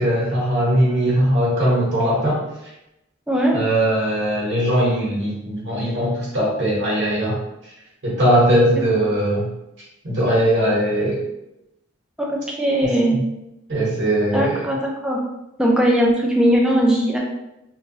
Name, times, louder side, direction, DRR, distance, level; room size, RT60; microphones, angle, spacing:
voice 1, 0.0-2.4 3.5-7.4 8.0-9.5 10.0-11.2 13.1-13.2 13.7-14.7, right 1 dB, 60° right, -6 dB, 0.9 m, -20 dB
voice 2, 3.3-3.6 12.2-13.2 14.3-15.2 15.6-17.2, equal, 5° right, -3 dB, 0.3 m, -19 dB
3.0 x 2.2 x 2.7 m, 0.89 s
head